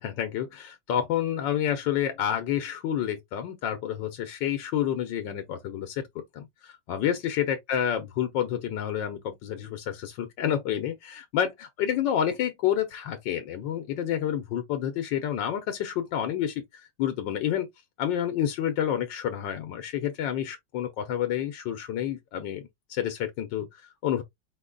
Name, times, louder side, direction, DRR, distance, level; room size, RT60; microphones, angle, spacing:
voice 1, 0.0-6.0 6.3-16.6 17.0-17.7 18.0-22.6 22.9-24.2, left 10 dB, 90° left, 1.5 m, -29 dB
5.0 x 2.3 x 3.8 m
omnidirectional pair, 1.9 m